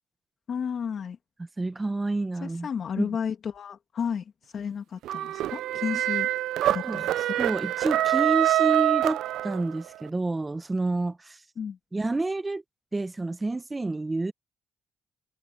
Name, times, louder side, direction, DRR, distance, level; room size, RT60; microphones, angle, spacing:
voice 1, 0.5-1.2 2.4-6.3 6.7-7.3 11.6-11.8, left 7 dB, 55° left, 2.6 m, -33 dB
voice 2, 1.6-2.7 3.0-3.1 6.8-7.0 7.4-11.4 11.9-12.6 12.9-14.3, right 2 dB, 20° right, 0.9 m, -29 dB
sound 1, 5.0-9.9, right 13 dB, 85° right, 0.5 m, -25 dB
cardioid pair, 90°, 0 cm